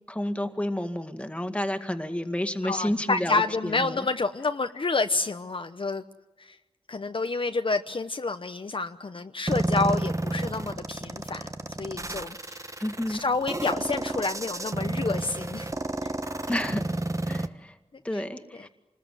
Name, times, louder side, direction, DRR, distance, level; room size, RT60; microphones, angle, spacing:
voice 1, 0.1-4.0 12.8-13.2 16.5-16.8 17.2-17.7 18.0-18.7, left 1 dB, 10° left, 8 dB, 2.1 m, -30 dB
voice 2, 2.6-6.0 6.4-6.6 6.9-11.5 11.8-12.7 13.1-15.7 16.0-16.1 18.1-18.2 18.6-18.7, left 3 dB, 50° left, 7 dB, 1.0 m, -29 dB
sound 1, 9.5-17.5, right 2 dB, 25° right, 1.2 m, -31 dB
28.0 x 20.5 x 9.3 m, 1.1 s
wide cardioid pair, 95°, 12 cm